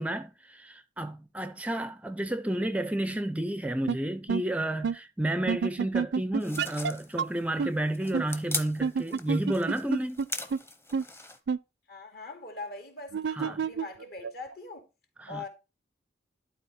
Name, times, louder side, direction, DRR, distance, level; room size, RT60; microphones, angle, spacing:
voice 1, 0.0-10.2 13.3-13.6 15.2-15.4, right 1 dB, 10° right, 0.4 m, -31 dB
sound 1, 3.9-4.0 4.3-4.4 4.8-5.0 5.5-6.9 7.2-7.3 7.6-7.7 8.1-8.2 8.8-10.3 10.5-10.6 10.9-11.0 11.5-11.6 13.1-14.5, right 5 dB, 65° right, 0.4 m, -28 dB
sound 2, 6.4-11.4, left 2 dB, 15° left, 0.9 m, -39 dB
voice 2, 11.9-14.8 15.3-15.5, left 3 dB, 55° left, 2.4 m, -42 dB
11.5 x 4.3 x 4.2 m
head